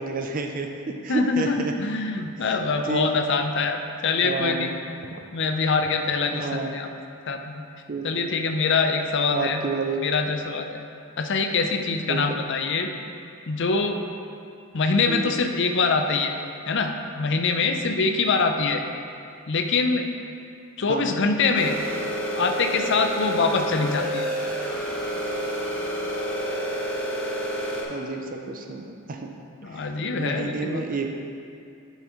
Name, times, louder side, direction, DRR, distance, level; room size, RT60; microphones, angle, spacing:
voice 1, 0.0-1.7 2.4-2.6 2.8-3.1 4.2-4.8 6.3-6.8 7.9-8.2 9.3-10.0 12.1-12.4 15.1-15.4 20.9-21.1 27.9-29.3 29.6-31.1, right 3 dB, 40° right, 3 dB, 0.5 m, -30 dB
voice 2, 1.1-3.8 4.0-4.7 5.3-6.9 7.3-7.6 8.0-9.6 10.0-10.8 11.2-12.9 13.5-14.0 14.7-16.3 16.7-18.8 19.5-20.1 20.8-21.8 22.4-24.3 29.6-31.0, left 4 dB, 55° left, 5 dB, 0.5 m, -24 dB
sound 1, 21.5-27.8, right 1 dB, 5° left, 0.9 m, -29 dB
10.5 x 5.6 x 3.1 m, 2.5 s
head